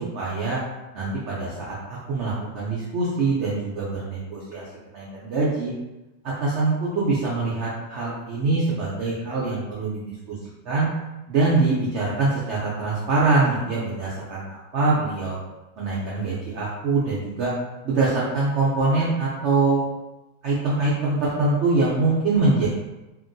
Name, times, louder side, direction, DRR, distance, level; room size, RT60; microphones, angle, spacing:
voice 1, 0.1-0.6 0.9-1.7 2.1-4.6 4.9-5.7 6.2-10.9 11.3-15.4 15.8-17.5 17.8-19.8 20.4-22.7, right 3 dB, 80° right, -6 dB, 0.6 m, -24 dB
2.9 x 2.6 x 2.5 m, 1.0 s
omnidirectional pair, 1.9 m